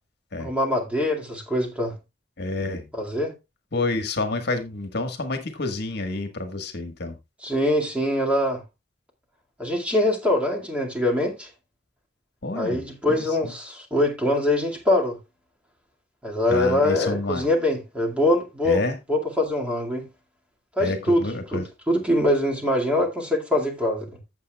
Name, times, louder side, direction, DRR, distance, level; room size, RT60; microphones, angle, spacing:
voice 1, 0.4-1.9 2.9-3.3 7.4-8.6 9.6-11.5 12.6-15.2 16.2-18.8 19.1-20.1 20.8-24.1, left 1 dB, 5° right, 2.1 m, -23 dB
voice 2, 2.4-2.9 3.7-7.2 12.4-13.5 16.5-17.5 18.6-19.0 20.8-21.7, left 2 dB, 60° left, 1.5 m, -29 dB
15.0 x 7.3 x 2.3 m
head